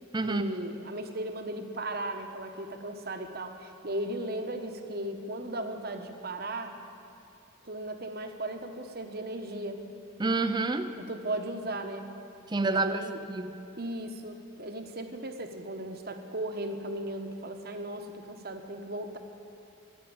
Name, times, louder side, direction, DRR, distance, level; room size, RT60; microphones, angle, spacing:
voice 1, 0.2-6.8 7.6-9.9 11.0-12.2 12.6-13.2 13.8-19.2, right 1 dB, 45° right, 6 dB, 1.1 m, -36 dB
voice 2, 10.2-10.9 12.5-13.0 13.3-13.6, right 3 dB, 20° right, 10 dB, 0.5 m, -28 dB
14.0 x 10.5 x 8.8 m, 2.6 s
head